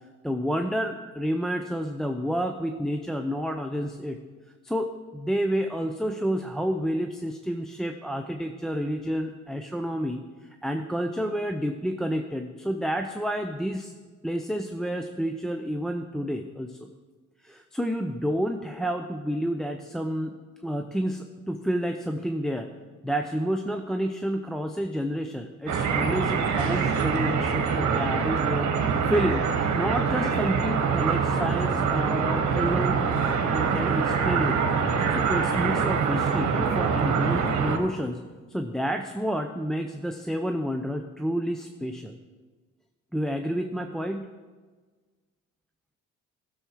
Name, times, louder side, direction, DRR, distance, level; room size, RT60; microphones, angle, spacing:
voice 1, 0.2-4.2 4.6-10.2 10.6-13.9 14.2-16.9 17.4-20.3 20.6-22.7 23.0-29.4 29.7-33.0 33.4-34.6 35.1-38.2 38.5-42.2 43.1-44.3, equal, ahead, 4 dB, 0.6 m, -29 dB
sound 1, 25.7-37.8, right 6 dB, 65° right, 1.4 m, -25 dB
15.0 x 7.0 x 4.6 m, 1.4 s
cardioid pair, 90°, 30 cm